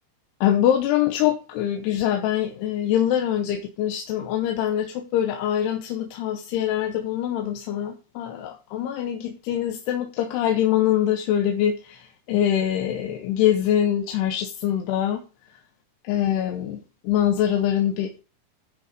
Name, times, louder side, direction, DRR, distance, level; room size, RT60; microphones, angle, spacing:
voice 1, 0.4-15.2 16.1-18.2, left 10 dB, 85° left, 5 dB, 2.9 m, -24 dB
12.0 x 4.9 x 5.1 m, 0.35 s
omnidirectional pair, 4.7 m